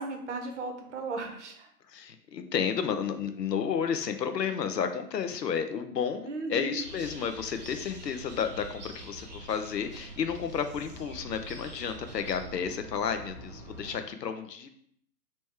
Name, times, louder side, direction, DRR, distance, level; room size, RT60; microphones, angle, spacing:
voice 1, 0.0-1.7 6.3-6.8, right 3 dB, 45° right, 4 dB, 1.0 m, -36 dB
voice 2, 1.9-14.7, left 7 dB, 80° left, 8 dB, 0.8 m, -32 dB
sound 1, 6.8-14.0, right 2 dB, 30° right, 0.5 m, -45 dB
4.5 x 3.0 x 3.6 m, 0.66 s
hypercardioid pair, 150°, 48 cm